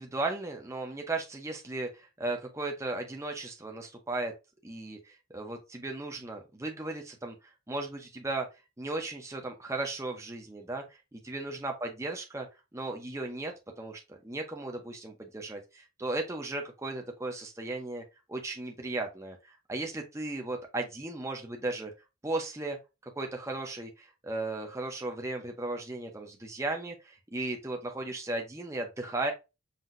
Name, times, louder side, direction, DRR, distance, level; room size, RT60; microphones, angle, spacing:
voice 1, 0.0-4.3 4.6-7.4 7.7-8.5 8.8-10.8 11.1-12.5 12.7-13.5 13.8-18.0 18.3-21.9 22.2-22.8 23.2-29.3, right 2 dB, 15° right, 2 dB, 0.7 m, -36 dB
5.7 x 2.8 x 2.5 m, 0.25 s
head